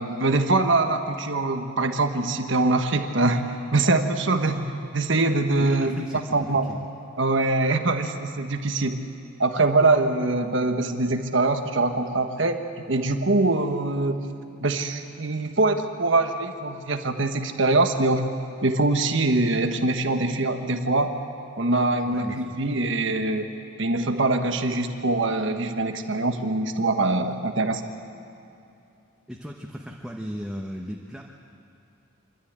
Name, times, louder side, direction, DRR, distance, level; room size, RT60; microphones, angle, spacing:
voice 1, 0.0-4.7 4.9-6.0 6.3-6.7 7.2-9.0 9.4-12.6 12.9-14.3 14.6-18.3 18.6-21.1 21.6-23.5 23.8-27.8, right 2 dB, 60° right, 6 dB, 1.3 m, -23 dB
voice 2, 5.6-6.9 22.0-22.6 29.3-31.2, equal, 5° right, -1 dB, 1.0 m, -36 dB
26.5 x 12.5 x 8.8 m, 2.7 s
head